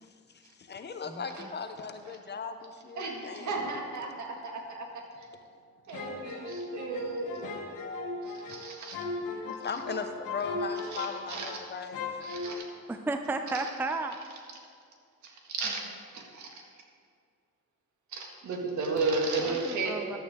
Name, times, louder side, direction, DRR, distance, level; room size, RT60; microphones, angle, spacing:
voice 1, 0.0-4.5 4.9-6.9 7.2-12.2, left 4 dB, 35° left, 8 dB, 0.7 m, -40 dB
voice 2, 3.0-5.3 5.9-7.5 8.5-9.0 10.9-11.5 12.2-12.7 13.5-13.7 15.2-16.6 18.1-20.2, right 3 dB, 70° right, 0 dB, 1.8 m, -34 dB
sound 1, 5.9-11.7 11.9-12.6, left 3 dB, 80° left, 1.5 m, -37 dB
voice 3, 12.9-14.2 19.4-20.2, right 2 dB, 5° right, 7 dB, 0.4 m, -33 dB
11.5 x 8.4 x 3.6 m, 2.2 s
cardioid pair, 90°, 30 cm